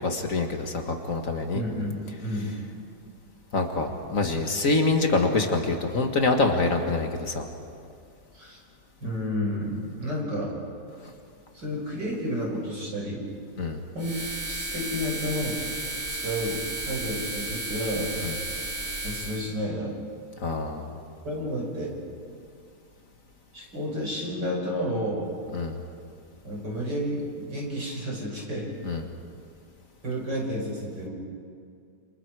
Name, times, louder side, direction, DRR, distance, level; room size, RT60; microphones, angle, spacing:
voice 1, 0.0-1.6 3.5-7.5 13.6-13.8 18.2-18.3 20.4-20.9 25.5-25.8 28.9-29.0, left 3 dB, 50° left, 4 dB, 2.0 m, -25 dB
voice 2, 1.5-2.5 8.3-8.6 9.0-10.6 11.5-13.2 13.9-14.2 14.4-15.6 16.1-18.1 19.0-20.0 21.2-21.9 23.5-25.3 26.4-28.7 30.0-31.1, equal, 75° right, -2 dB, 6.4 m, -31 dB
sound 1, 14.0-19.5, right 2 dB, 45° right, 3.4 m, -33 dB
28.5 x 28.0 x 4.8 m, 2.4 s
omnidirectional pair, 1.9 m